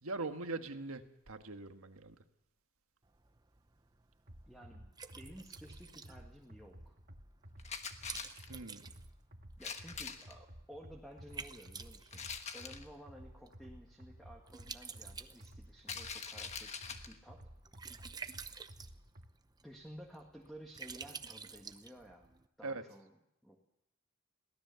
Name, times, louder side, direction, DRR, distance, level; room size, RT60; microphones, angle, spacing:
voice 1, 0.0-2.2 8.5-8.8 22.6-22.8, right 3 dB, 85° right, 7 dB, 1.6 m, -41 dB
Liquid, 3.0-22.5, right 5 dB, 20° right, 0.7 m, -52 dB
sound 1, 4.3-19.3, equal, 45° right, 1.7 m, -54 dB
voice 2, 4.5-7.0 9.6-12.3 12.5-17.5 19.6-22.3 22.6-23.2 23.4-23.6, equal, ahead, 0 dB, 1.8 m, -54 dB
sound 2, 7.6-8.5 9.6-10.3 12.1-12.9 15.8-17.2, left 5 dB, 30° left, 1.4 m, -44 dB
22.5 x 17.0 x 7.0 m, 0.82 s
head